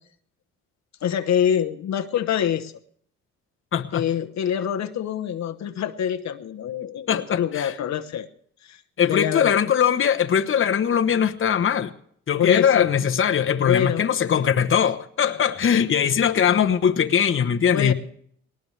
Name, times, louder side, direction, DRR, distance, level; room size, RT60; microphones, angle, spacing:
voice 1, 1.0-2.7 3.9-8.3 8.6-9.6 12.4-12.9 13.6-14.0 17.7-17.9, left 9 dB, 65° left, 1.1 m, -25 dB
voice 2, 3.7-4.0 7.1-7.7 9.0-11.9 12.3-17.9, left 8 dB, 40° left, 1.1 m, -21 dB
20.0 x 19.0 x 3.3 m
cardioid pair, 90°, 30 cm